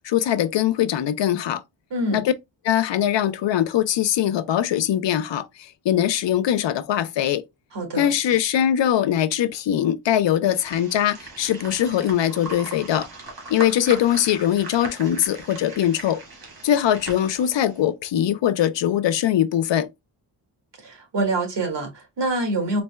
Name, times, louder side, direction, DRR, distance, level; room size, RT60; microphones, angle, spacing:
voice 1, 0.0-1.6 2.1-2.3 2.6-7.4 8.0-13.1 13.5-16.2 16.6-19.9, left 11 dB, 80° left, 0.6 m, -22 dB
voice 2, 1.9-2.2 7.7-8.1 20.8-22.8, right 2 dB, 75° right, 1.8 m, -25 dB
sound 1, 10.5-17.8, right 3 dB, 55° right, 1.5 m, -39 dB
4.1 x 2.2 x 3.3 m
wide cardioid pair, 155°, 42 cm